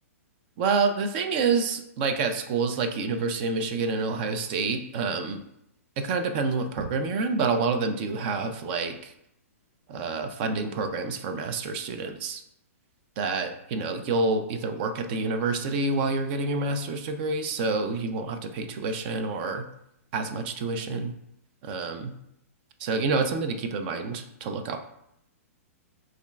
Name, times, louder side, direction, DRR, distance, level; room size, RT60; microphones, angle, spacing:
voice 1, 0.6-5.4 6.0-9.1 9.9-12.4 13.2-19.7 20.1-21.1 21.6-22.1 22.8-24.8, right 4 dB, 40° right, 7 dB, 0.4 m, -28 dB
5.3 x 2.4 x 2.3 m, 0.77 s
hypercardioid pair, 140°, 8 cm